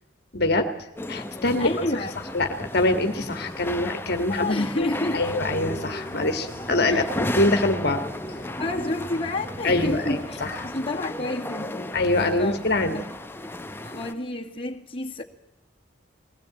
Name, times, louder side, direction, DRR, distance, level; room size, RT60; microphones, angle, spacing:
voice 1, 0.3-0.7 1.1-1.9 2.3-4.9 5.1-8.0 9.6-10.7 11.9-13.0, left 2 dB, 55° left, 1.7 m, -24 dB
sound 1, 1.0-14.1, left 1 dB, 10° left, 0.9 m, -34 dB
voice 2, 1.6-2.2 4.3-5.2 6.9-7.1 8.6-10.4 10.6-12.0 12.4-12.6 12.9-13.1 13.8-15.2, left 2 dB, 30° left, 2.1 m, -30 dB
sound 2, 5.1-10.7, right 1 dB, 45° right, 5.2 m, -45 dB
21.0 x 16.5 x 8.8 m
head